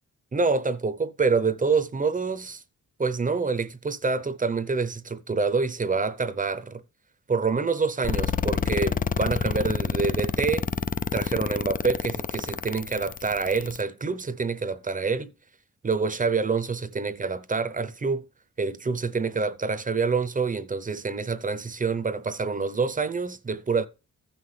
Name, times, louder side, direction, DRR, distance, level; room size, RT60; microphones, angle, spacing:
voice 1, 0.3-2.6 3.0-6.8 7.3-10.7 11.1-15.3 15.8-18.3 18.6-23.9, right 4 dB, 25° right, 0.7 m, -27 dB
sound 1, 8.0-13.8, left 6 dB, 25° left, 0.3 m, -28 dB
15.0 x 5.8 x 3.3 m
wide cardioid pair, 170°, 32 cm